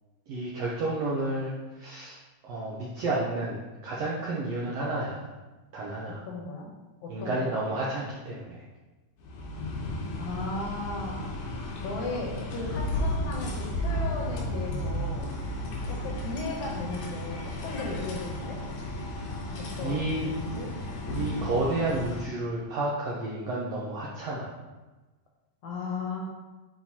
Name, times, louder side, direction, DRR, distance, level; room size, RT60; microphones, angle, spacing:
voice 1, 0.3-2.2 2.4-5.3 5.7-6.2 7.1-8.6 15.8-15.9 19.8-20.3 21.1-24.5, right 2 dB, 75° right, -5 dB, 1.5 m, -31 dB
voice 2, 6.3-6.7 7.0-7.6 10.2-11.4 11.8-15.3 15.9-18.6 19.6-20.7 25.6-26.3, left 3 dB, 70° left, -1 dB, 2.1 m, -36 dB
sound 1, 9.2-22.2, left 1 dB, 90° left, 2.7 m, -33 dB
8.6 x 3.8 x 2.9 m, 1.2 s
omnidirectional pair, 3.9 m